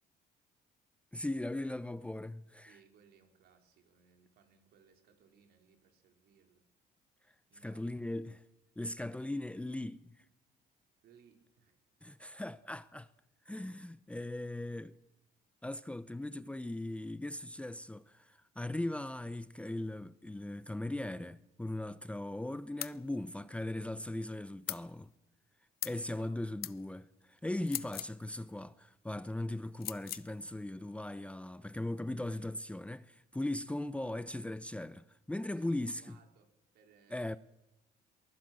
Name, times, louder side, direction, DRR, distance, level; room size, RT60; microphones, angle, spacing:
voice 1, 1.1-2.8 7.6-8.4 8.8-10.1 12.0-13.1 13.5-14.9 15.6-25.1 25.8-36.2 37.1-37.4, left 1 dB, 5° left, 0.8 m, -39 dB
voice 2, 2.6-6.6 7.5-8.0 11.0-11.8 26.1-26.6 31.5-31.7 35.3-37.4, right 7 dB, 70° right, 4.3 m, -65 dB
sound 1, 22.8-23.0 24.7-24.9 25.8-26.0 26.6-26.8 27.6-28.2 29.8-30.3, left 14 dB, 65° left, 0.8 m, -39 dB
23.0 x 20.0 x 7.7 m
cardioid pair, 110°, 17 cm